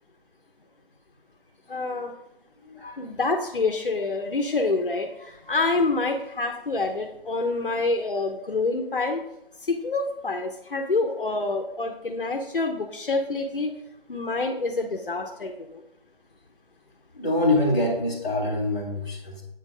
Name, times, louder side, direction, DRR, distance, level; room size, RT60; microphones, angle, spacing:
voice 1, 1.7-2.1 3.0-9.2 9.6-13.7 14.1-15.8, left 3 dB, 60° left, 3 dB, 0.9 m, -27 dB
voice 2, 17.1-19.4, left 1 dB, 15° left, -8 dB, 2.0 m, -25 dB
8.4 x 4.4 x 5.0 m, 0.81 s
figure-of-eight pair, 170°, 30 cm